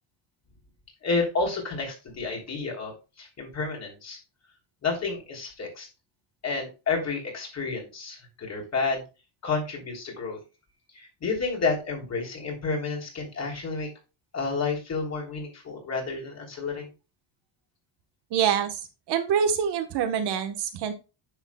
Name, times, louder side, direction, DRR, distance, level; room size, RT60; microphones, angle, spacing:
voice 1, 1.0-4.2 4.8-5.9 6.4-9.0 9.4-10.4 10.9-13.9 14.3-16.9, left 4 dB, 35° left, 1 dB, 3.3 m, -30 dB
voice 2, 18.3-18.8 19.1-20.9, right 7 dB, 55° right, 8 dB, 1.3 m, -25 dB
10.0 x 6.3 x 2.3 m, 0.29 s
cardioid pair, 150°, 48 cm